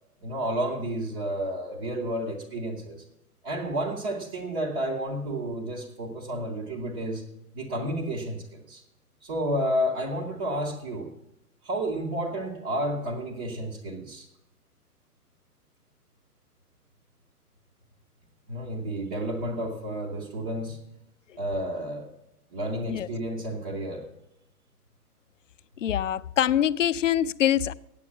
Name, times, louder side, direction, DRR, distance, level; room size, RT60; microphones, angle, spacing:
voice 1, 0.2-3.0 3.4-7.2 7.5-8.8 9.2-11.1 11.6-14.3 18.5-20.8 21.4-22.1 22.5-24.0, right 1 dB, 10° right, 0.5 m, -31 dB
voice 2, 25.8-27.7, left 10 dB, 55° left, 0.5 m, -24 dB
8.5 x 8.3 x 8.3 m
figure-of-eight pair, 120°, 47 cm